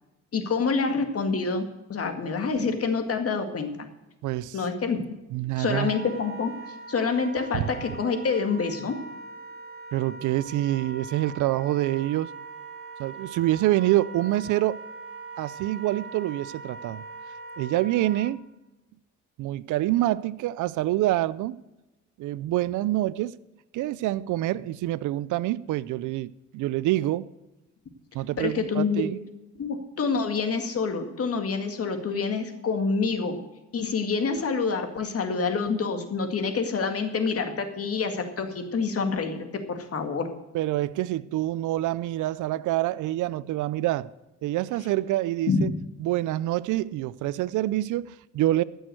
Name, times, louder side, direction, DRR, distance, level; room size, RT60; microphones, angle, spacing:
voice 1, 0.3-3.9 4.5-5.2 5.6-6.5 6.9-9.0 28.4-29.1 29.6-33.4 33.7-40.3 45.5-45.7, left 4 dB, 50° left, 2.0 m, -27 dB
voice 2, 4.2-4.6 5.3-5.9 7.5-7.7 9.9-12.3 13.0-14.8 15.4-17.0 17.6-18.4 19.4-21.6 22.2-23.4 23.7-27.3 28.1-29.2 40.5-44.1 44.4-45.7 46.0-48.6, right 15 dB, 85° right, 0.5 m, -26 dB
Wind instrument woodwind instrument, 5.6-18.3, right 4 dB, 35° right, 5.8 m, -41 dB
14.0 x 6.4 x 7.7 m
cardioid pair, 90°, 30 cm